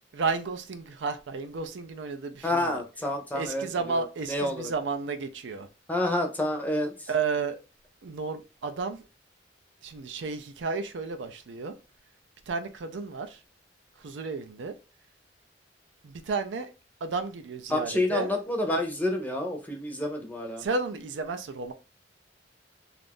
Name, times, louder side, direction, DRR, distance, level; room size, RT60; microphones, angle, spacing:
voice 1, 0.1-2.8 3.3-5.7 7.1-7.6 8.0-9.0 9.8-11.7 12.5-13.4 14.0-14.7 16.0-16.7 17.0-18.3 20.6-21.7, right 4 dB, 75° right, 0.4 m, -32 dB
voice 2, 2.4-4.7 5.9-7.1 17.7-20.6, left 1 dB, 10° left, 0.6 m, -29 dB
2.6 x 2.4 x 3.4 m
head